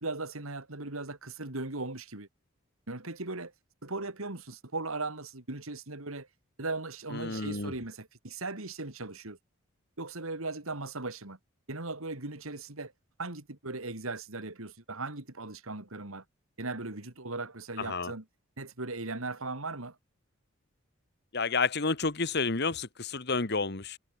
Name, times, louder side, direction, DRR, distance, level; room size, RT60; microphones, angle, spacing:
voice 1, 0.0-2.3 2.9-3.5 3.8-6.3 6.6-9.4 10.0-11.4 11.7-12.9 13.2-16.2 16.6-18.2 18.6-20.0, right 3 dB, 85° right, 3.0 m, -38 dB
voice 2, 7.1-7.7 17.8-18.1 21.3-24.0, left 4 dB, 50° left, 1.5 m, -30 dB
head